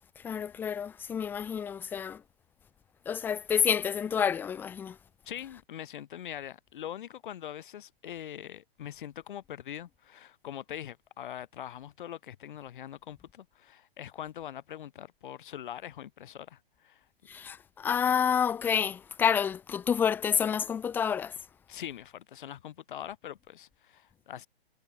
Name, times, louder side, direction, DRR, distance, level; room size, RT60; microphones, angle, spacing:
voice 1, 0.2-2.2 3.1-4.9 17.3-21.3, left 7 dB, 5° left, 0.5 m, -29 dB
voice 2, 5.3-17.1 21.7-24.5, left 10 dB, 55° left, 5.2 m, -43 dB
figure-of-eight pair, 125°, 30 cm